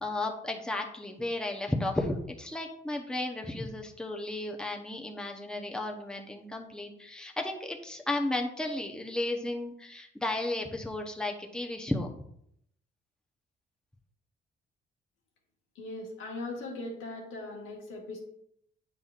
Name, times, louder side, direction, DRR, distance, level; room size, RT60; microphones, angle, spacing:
voice 1, 0.0-12.1, left 2 dB, 5° left, 1 dB, 0.8 m, -34 dB
voice 2, 15.7-18.2, left 2 dB, 90° left, -1 dB, 1.5 m, -39 dB
8.4 x 5.6 x 2.4 m, 0.72 s
cardioid pair, 90°, 20 cm